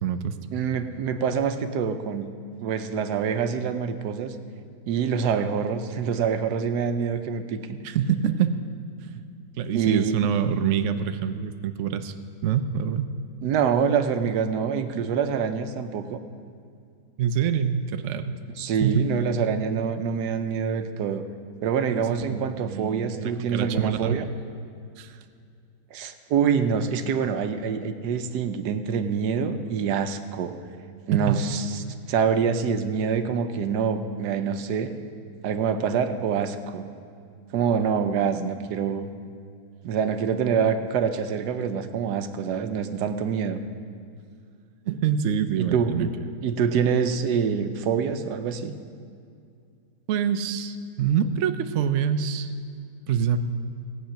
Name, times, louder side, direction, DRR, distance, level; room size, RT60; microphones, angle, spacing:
voice 1, 0.0-0.4 7.8-8.6 9.6-12.1 12.4-13.1 17.2-18.4 18.8-19.1 22.3-24.2 25.0-25.2 31.1-31.4 44.8-46.1 46.7-46.8 50.1-52.5 53.1-53.4, right 8 dB, 65° right, 9 dB, 0.8 m, -25 dB
voice 2, 0.5-2.3 2.6-4.3 4.9-7.8 9.7-10.2 13.4-16.2 18.6-21.2 21.6-24.3 25.9-30.6 31.1-35.0 35.4-36.9 37.5-39.1 39.8-43.6 45.6-46.1 46.4-48.8, right 6 dB, 80° right, 9 dB, 1.3 m, -26 dB
17.0 x 8.3 x 5.8 m, 2.4 s
omnidirectional pair, 1.8 m